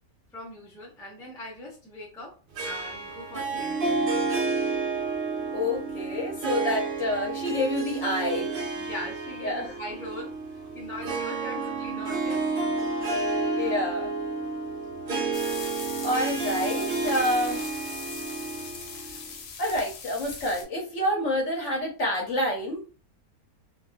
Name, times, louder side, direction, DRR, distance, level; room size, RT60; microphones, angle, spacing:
voice 1, 0.3-2.4 2.6-4.3 8.7-12.7, left 1 dB, 5° left, -4 dB, 0.4 m, -41 dB
Harp, 2.6-19.3, right 3 dB, 75° right, 0.5 m, -30 dB
voice 2, 5.5-8.5 9.4-9.7 13.6-14.1 16.0-17.6 19.6-22.9, left 1 dB, 55° left, -2 dB, 1.0 m, -28 dB
sound 1, 15.3-20.6, left 5 dB, 75° left, 0.5 m, -40 dB
2.6 x 2.4 x 2.2 m, 0.35 s
omnidirectional pair, 1.7 m